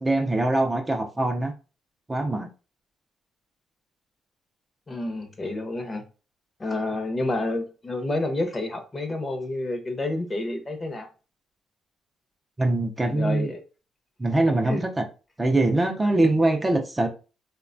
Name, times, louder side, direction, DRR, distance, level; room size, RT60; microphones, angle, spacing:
voice 1, 0.0-1.5 2.1-2.5 12.6-13.5 14.2-15.0 15.4-17.1, right 2 dB, 20° right, 0.4 m, -23 dB
voice 2, 4.9-6.0 6.6-11.1 13.1-13.6 14.7-14.8, left 2 dB, 25° left, 0.6 m, -29 dB
3.1 x 2.1 x 2.5 m
cardioid pair, 90°, 0 cm